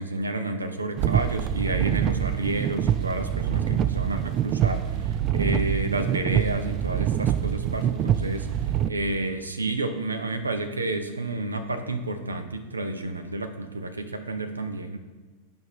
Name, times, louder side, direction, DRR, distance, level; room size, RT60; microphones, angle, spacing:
voice 1, 0.0-5.0 5.3-8.5 8.9-15.0, right 2 dB, 80° right, 7 dB, 0.6 m, -30 dB
sound 1, 1.0-8.9, right 10 dB, 35° right, 0.3 m, -25 dB
9.1 x 5.1 x 3.3 m, 1.4 s
figure-of-eight pair, 90°, 0 cm